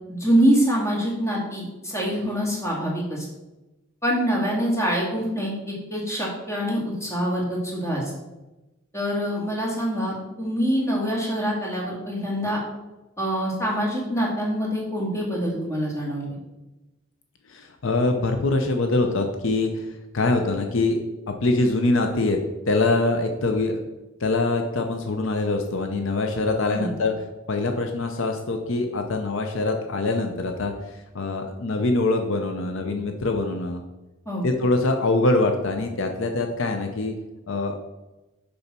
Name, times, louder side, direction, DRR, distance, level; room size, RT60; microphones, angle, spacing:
voice 1, 0.1-3.2 4.0-8.0 8.9-12.6 13.2-16.4 26.7-26.9 34.3-34.4, equal, 15° left, -4 dB, 2.0 m, -25 dB
voice 2, 17.5-21.0 21.3-22.4 22.7-23.8 24.2-27.1 27.5-33.8 34.4-37.1 37.5-37.8, left 2 dB, 65° left, 5 dB, 0.6 m, -24 dB
6.8 x 5.5 x 4.3 m, 1.0 s
head